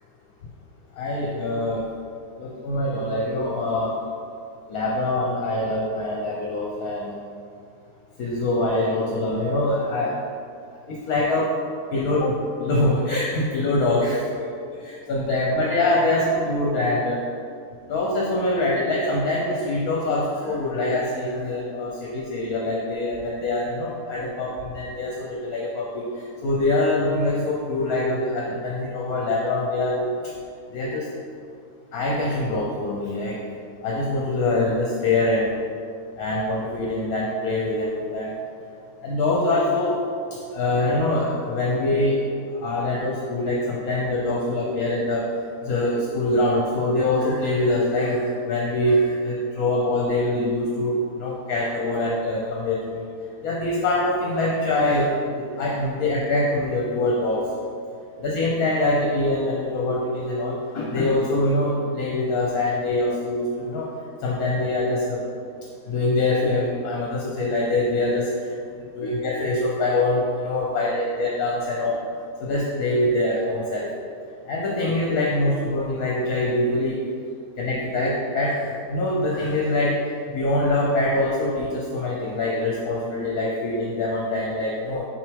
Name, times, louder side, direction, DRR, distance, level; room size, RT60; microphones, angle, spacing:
voice 1, 1.0-1.9 2.4-3.9 4.7-7.2 8.2-10.1 10.9-11.5 11.9-14.5 14.8-17.2 17.9-30.1 30.7-31.1 31.9-33.4 33.8-35.5 36.2-38.3 39.0-40.0 40.5-42.2 42.5-45.3 45.6-53.1 53.4-57.4 58.2-63.9 64.2-65.2 65.9-68.5 69.0-71.9 72.4-73.9 74.5-77.0 77.6-80.0 80.3-85.0, left 2 dB, 70° left, -3 dB, 1.1 m, -24 dB
5.7 x 4.7 x 3.5 m, 2.3 s
omnidirectional pair, 1.7 m